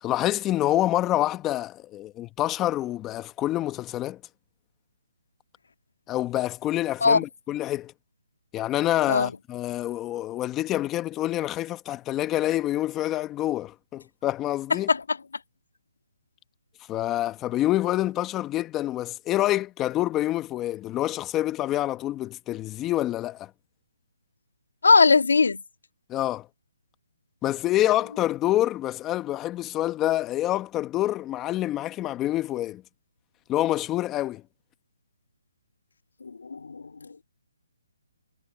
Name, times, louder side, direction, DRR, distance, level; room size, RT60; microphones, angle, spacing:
voice 1, 0.0-4.2 6.1-7.9 8.5-14.9 16.9-23.5 26.1-26.5 27.4-32.8 33.5-34.4, left 14 dB, 15° left, 1.3 m, -27 dB
voice 2, 24.8-25.6 36.2-36.8, left 4 dB, 80° left, 2.1 m, -19 dB
hypercardioid pair, 160°, 0 cm